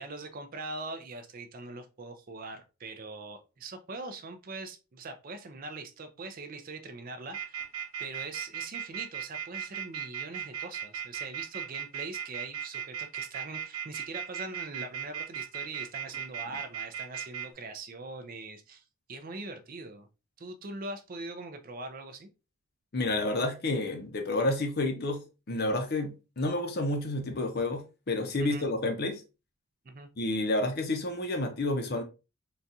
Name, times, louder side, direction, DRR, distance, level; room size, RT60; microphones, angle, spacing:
voice 1, 0.0-7.7 8.0-18.8 19.1-20.1 20.4-22.3 28.4-28.7 29.8-30.1, right 3 dB, 40° right, 0.4 m, -42 dB
sound 1, 7.3-17.5, right 9 dB, 75° right, 0.8 m, -36 dB
voice 2, 22.9-25.2 25.5-29.2 30.2-32.0, left 2 dB, 45° left, 0.6 m, -30 dB
4.0 x 2.3 x 2.6 m
head